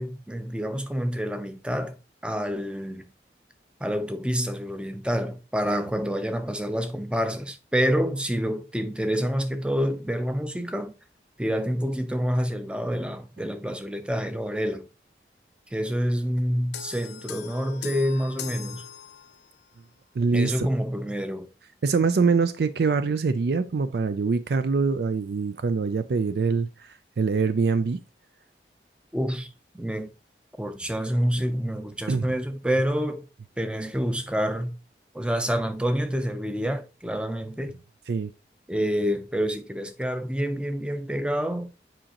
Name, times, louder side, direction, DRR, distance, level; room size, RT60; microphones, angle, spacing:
voice 1, 0.0-2.0 2.2-3.0 3.8-10.9 11.4-14.9 15.7-18.8 20.3-21.5 29.1-29.5 29.7-30.1 30.6-33.3 33.6-34.7 35.1-37.8 38.7-41.7, equal, 5° right, 0.5 m, -27 dB
sound 1, 16.7-19.6, left 8 dB, 85° left, 0.6 m, -40 dB
voice 2, 20.2-20.7 21.8-26.9 27.2-28.0 32.1-32.3 38.1-38.3, right 4 dB, 70° right, 0.4 m, -24 dB
7.6 x 4.9 x 2.9 m
head